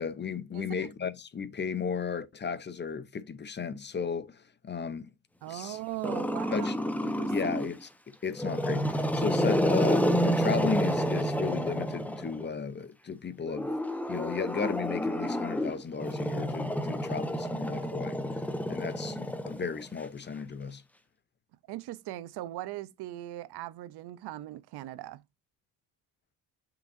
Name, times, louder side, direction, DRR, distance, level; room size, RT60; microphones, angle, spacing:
voice 1, 0.0-5.0 5.5-5.8 6.5-6.7 7.3-7.9 8.2-13.7 14.1-18.2 18.7-20.8, left 6 dB, 25° left, 0.7 m, -34 dB
voice 2, 5.4-6.7 7.0-7.6 21.7-25.2, right 15 dB, 75° right, 0.7 m, -39 dB
Growling, 6.0-7.8 8.3-12.5 13.5-20.0, equal, 5° left, 1.0 m, -29 dB
6.8 x 5.8 x 2.6 m
cardioid pair, 105°, 40 cm